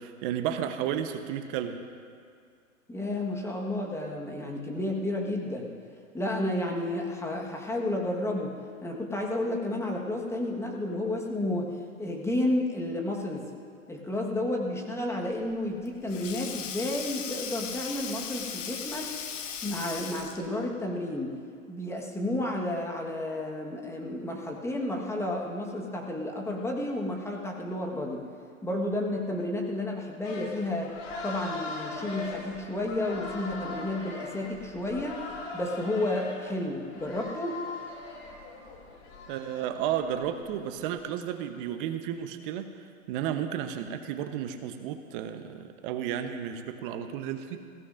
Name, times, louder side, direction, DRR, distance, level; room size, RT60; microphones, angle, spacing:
voice 1, 0.0-1.8 39.3-47.6, right 9 dB, 40° right, 8 dB, 1.0 m, -33 dB
voice 2, 2.9-5.7 6.1-11.7 12.0-13.5 13.9-19.1 19.6-21.4 21.7-28.2 28.6-30.9 31.2-35.2 35.5-37.6, left 1 dB, 5° left, 0 dB, 1.4 m, -31 dB
Sink (filling or washing), 15.4-20.6, left 7 dB, 65° left, 1.4 m, -38 dB
sound 1, 30.2-41.0, left 3 dB, 40° left, 2.7 m, -41 dB
20.5 x 16.5 x 2.6 m, 2.2 s
hypercardioid pair, 115°, 42 cm